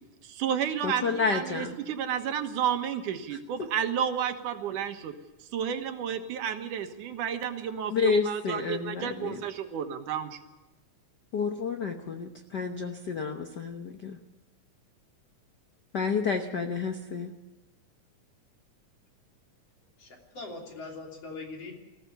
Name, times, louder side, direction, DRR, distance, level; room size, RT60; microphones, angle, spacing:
voice 1, 0.2-5.1 5.5-10.4, right 8 dB, 85° right, 7 dB, 2.9 m, -31 dB
voice 2, 0.8-1.8 7.9-9.4 11.3-14.2 15.9-17.3, left 5 dB, 90° left, 5 dB, 0.9 m, -30 dB
voice 3, 20.0-21.7, left 3 dB, 50° left, 1 dB, 4.1 m, -41 dB
20.0 x 15.5 x 8.3 m, 1.1 s
omnidirectional pair, 3.6 m